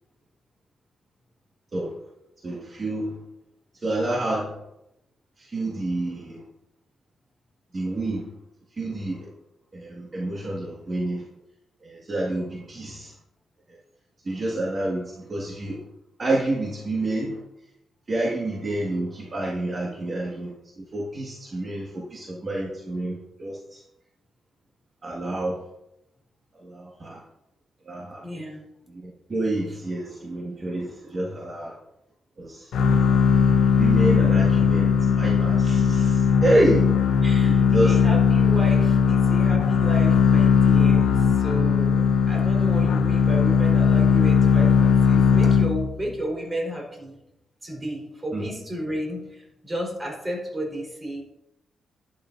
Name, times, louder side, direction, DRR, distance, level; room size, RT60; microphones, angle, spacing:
voice 1, 2.4-3.2 3.8-4.5 5.4-6.4 7.7-8.3 8.7-9.3 9.7-11.2 11.8-13.1 14.2-15.8 16.2-17.4 18.1-23.8 25.0-25.6 26.6-27.2 27.8-28.2 28.9-31.7 32.4-32.7 33.8-36.9 37.4-38.0 48.3-48.4, right 1 dB, 35° right, -3 dB, 1.7 m, -28 dB
voice 2, 28.2-28.6 37.2-47.1 47.6-51.2, equal, 20° right, -1 dB, 4.0 m, -33 dB
sound 1, 32.7-46.1, left 6 dB, 80° left, 0.8 m, -19 dB
12.0 x 10.5 x 2.6 m, 0.88 s
cardioid pair, 120°, 0 cm